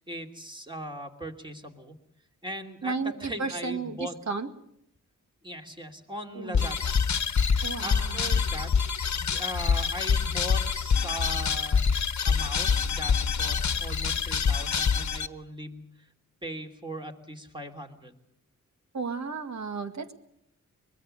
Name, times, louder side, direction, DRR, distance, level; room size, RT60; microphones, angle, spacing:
voice 1, 0.0-2.0 2.4-2.9 3.2-4.2 5.4-7.0 7.8-8.8 9.1-11.9 12.2-16.1 16.4-18.1, equal, 15° right, 3 dB, 2.8 m, -39 dB
voice 2, 2.8-4.5 6.3-6.7 7.6-8.4 18.9-20.1, right 4 dB, 55° right, 8 dB, 1.9 m, -33 dB
sound 1, 6.5-15.3, left 6 dB, 60° left, 1.2 m, -26 dB
24.0 x 21.0 x 6.5 m, 0.76 s
wide cardioid pair, 100°, 32 cm